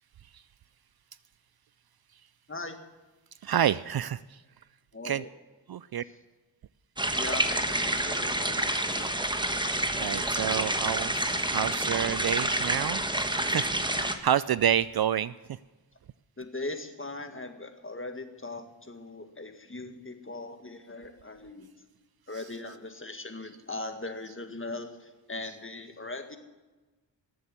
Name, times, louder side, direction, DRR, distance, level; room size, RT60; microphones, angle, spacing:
voice 1, 3.4-4.2 5.0-5.2 5.7-6.0 9.6-13.0 13.4-13.7 14.0-15.3, right 9 dB, 55° right, 17 dB, 0.5 m, -28 dB
voice 2, 4.9-5.3 7.2-9.1 16.4-21.7 22.3-26.4, left 2 dB, 25° left, 7 dB, 1.8 m, -39 dB
sound 1, 7.0-14.2, right 1 dB, 10° right, 1.3 m, -28 dB
13.5 x 8.0 x 8.3 m, 1.2 s
cardioid pair, 55°, 46 cm